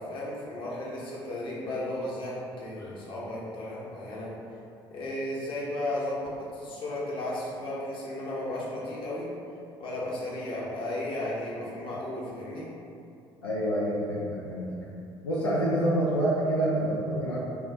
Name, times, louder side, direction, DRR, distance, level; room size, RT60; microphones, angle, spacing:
voice 1, 0.0-4.3 4.9-9.3 9.8-12.7, left 1 dB, 40° left, -6 dB, 0.9 m, -34 dB
voice 2, 13.4-14.7 15.2-17.4, right 1 dB, 80° left, -8 dB, 0.4 m, -27 dB
2.8 x 2.4 x 3.4 m, 2.6 s
figure-of-eight pair, 55°, 13 cm